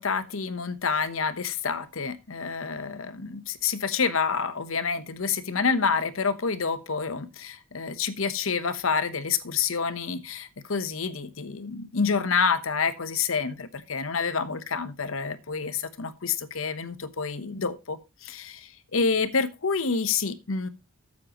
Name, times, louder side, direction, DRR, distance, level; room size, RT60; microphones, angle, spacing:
voice 1, 0.0-20.7, left 5 dB, 90° left, 1.0 m, -28 dB
13.5 x 7.6 x 3.0 m
head